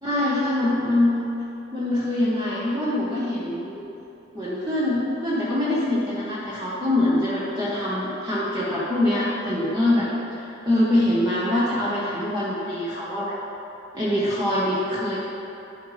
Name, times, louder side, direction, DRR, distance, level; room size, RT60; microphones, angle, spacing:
voice 1, 0.0-1.2 1.7-3.8 4.3-10.1 10.4-13.4 13.9-15.2, left 1 dB, 20° right, -10 dB, 1.1 m, -24 dB
11.0 x 7.7 x 3.3 m, 2.9 s
head